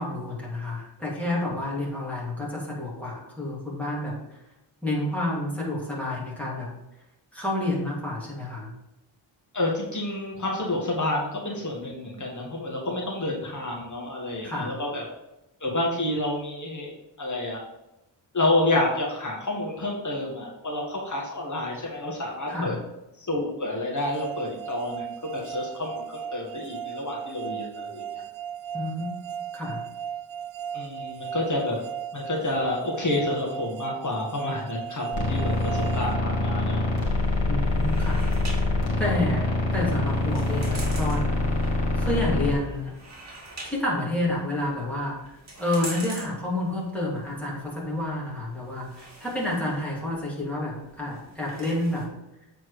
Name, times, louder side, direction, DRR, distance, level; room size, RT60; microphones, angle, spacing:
voice 1, 0.0-4.4 4.8-6.7 7.3-8.7 14.4-14.8 22.5-22.8 28.7-29.8 37.5-38.2 39.0-42.9 43.6-52.1, left 1 dB, 5° left, -6 dB, 2.7 m, -29 dB
voice 2, 9.5-15.0 15.6-17.6 18.3-22.8 23.2-28.2 30.7-31.8 32.1-36.8, left 2 dB, 40° left, -2 dB, 1.9 m, -29 dB
sound 1, 24.0-37.0, right 9 dB, 85° right, 0.5 m, -36 dB
sound 2, 35.1-42.5, left 2 dB, 80° left, 2.3 m, -25 dB
sound 3, 37.0-52.0, right 2 dB, 35° right, 1.9 m, -45 dB
7.9 x 4.5 x 4.9 m, 0.93 s
wide cardioid pair, 120°, 46 cm